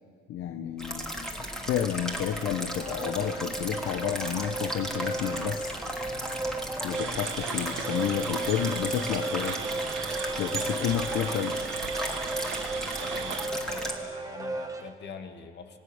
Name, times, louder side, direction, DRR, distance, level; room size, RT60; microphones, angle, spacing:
voice 1, 0.3-1.3 1.6-5.8 6.8-9.6 10.4-11.7, left 10 dB, 85° left, 8 dB, 1.0 m, -31 dB
sound 1, 0.8-13.9, equal, 5° left, 3.0 m, -35 dB
sound 2, 2.3-14.9, right 2 dB, 15° right, 1.9 m, -36 dB
sound 3, 6.9-13.5, right 8 dB, 75° right, 1.8 m, -37 dB
voice 2, 13.0-15.8, left 5 dB, 60° left, 6 dB, 2.2 m, -44 dB
26.0 x 18.5 x 7.2 m, 2.3 s
cardioid pair, 90°, 20 cm